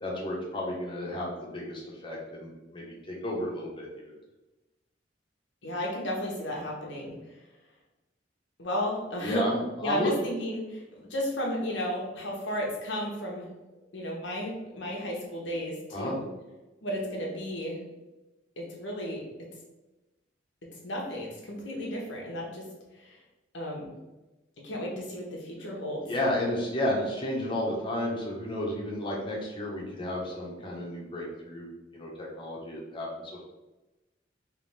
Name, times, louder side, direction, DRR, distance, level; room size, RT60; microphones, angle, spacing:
voice 1, 0.0-4.1 9.2-10.1 15.9-16.1 26.0-31.7 31.9-33.1, left 1 dB, 25° left, -3 dB, 1.0 m, -32 dB
voice 2, 5.6-7.1 8.6-9.5 9.8-13.5 13.9-16.3 16.8-17.8 18.6-19.2 20.8-22.7 22.9-23.2 23.5-24.0 24.6-26.1, equal, 75° left, -2 dB, 1.2 m, -33 dB
3.4 x 3.3 x 3.4 m, 1.1 s
head